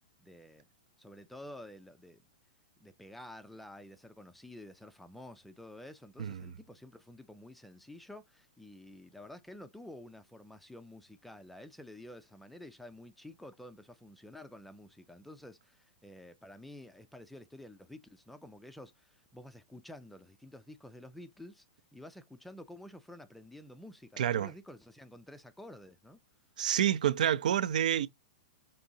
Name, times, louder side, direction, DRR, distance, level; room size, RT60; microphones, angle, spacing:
voice 1, 0.2-0.7 1.0-2.2 2.8-21.7 21.9-26.2, left 1 dB, ahead, 0.3 m, -50 dB
voice 2, 24.2-24.5 26.6-28.1, right 10 dB, 75° right, 0.4 m, -28 dB
5.0 x 2.7 x 2.7 m
hypercardioid pair, 165°, 4 cm